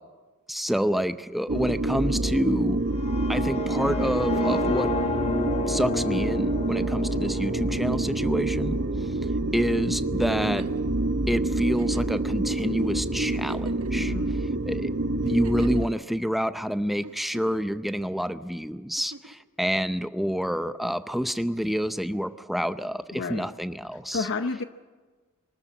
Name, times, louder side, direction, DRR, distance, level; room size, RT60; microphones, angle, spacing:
voice 1, 0.5-2.8 3.3-4.9 5.7-8.8 9.5-10.7 11.3-14.9 15.2-24.3, equal, ahead, 11 dB, 0.6 m, -28 dB
sound 1, 1.5-15.9, right 2 dB, 55° right, 1.2 m, -27 dB
sound 2, 2.9-8.9, left 3 dB, 30° left, 1.2 m, -32 dB
Giggle, 10.3-10.9 11.7-12.2 12.8-12.9 13.3-14.1 15.2-15.9 17.0-17.7 19.0-19.4 20.9-21.0, right 2 dB, 75° right, 1.3 m, -43 dB
voice 2, 13.9-14.4 23.1-23.5 24.1-24.6, left 4 dB, 55° left, 9 dB, 0.7 m, -30 dB
24.0 x 13.5 x 9.3 m, 1.3 s
head